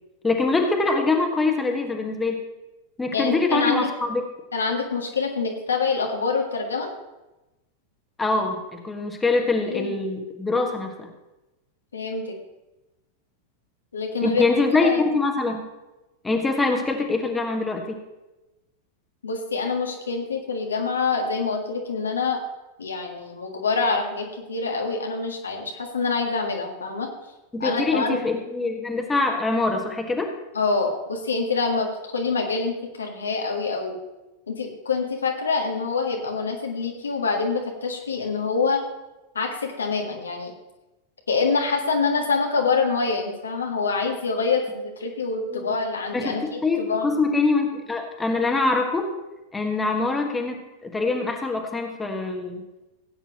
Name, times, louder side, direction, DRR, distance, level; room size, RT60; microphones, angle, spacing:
voice 1, 0.2-2.4 3.0-4.2 8.2-11.1 14.2-15.6 16.2-18.0 27.5-30.3 45.5-45.7 46.1-49.1 49.5-52.6, left 3 dB, 10° left, 2 dB, 1.6 m, -24 dB
voice 2, 3.1-3.9 4.5-6.9 9.7-10.0 11.9-12.4 13.9-14.4 14.8-15.0 19.2-22.4 22.8-27.1 27.6-28.2 30.5-31.9 32.1-34.0 34.5-38.8 39.3-40.5 41.3-47.1, left 4 dB, 70° left, 2 dB, 1.7 m, -26 dB
17.0 x 8.9 x 3.0 m, 1.0 s
figure-of-eight pair, 90°, 0 cm